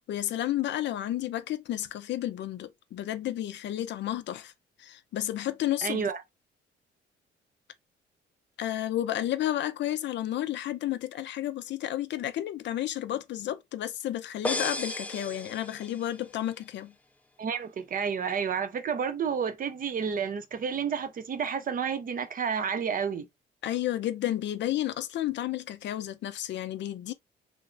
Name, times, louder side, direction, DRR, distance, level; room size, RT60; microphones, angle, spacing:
voice 1, 0.0-4.5 4.8-6.0 8.6-16.9 23.6-27.1, left 13 dB, 65° left, 0.4 m, -31 dB
voice 2, 5.8-6.2 17.4-23.3, right 6 dB, 45° right, 0.6 m, -30 dB
sound 1, 14.4-16.2, left 1 dB, 5° left, 0.4 m, -34 dB
3.1 x 2.0 x 2.5 m
cardioid pair, 90°, 20 cm